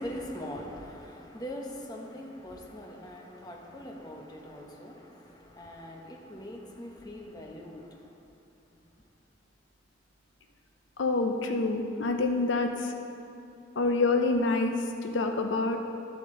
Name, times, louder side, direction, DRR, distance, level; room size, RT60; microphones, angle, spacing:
voice 1, 0.0-7.9, equal, 20° left, 0 dB, 1.0 m, -42 dB
voice 2, 11.0-12.9 13.8-15.8, left 3 dB, 80° left, 5 dB, 0.7 m, -27 dB
12.5 x 7.7 x 3.8 m, 2.7 s
head